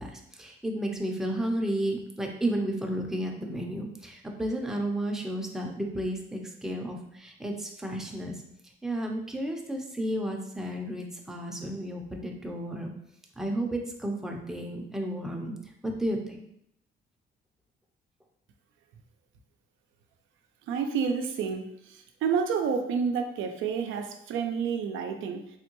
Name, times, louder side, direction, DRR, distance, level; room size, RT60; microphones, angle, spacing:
voice 1, 0.0-8.4 8.8-12.9 13.4-15.5 15.8-16.5, right 1 dB, ahead, 1 dB, 0.5 m, -32 dB
voice 2, 20.7-25.6, right 6 dB, 80° right, 5 dB, 0.4 m, -29 dB
3.5 x 2.2 x 2.9 m, 0.77 s
cardioid pair, 90°, 20 cm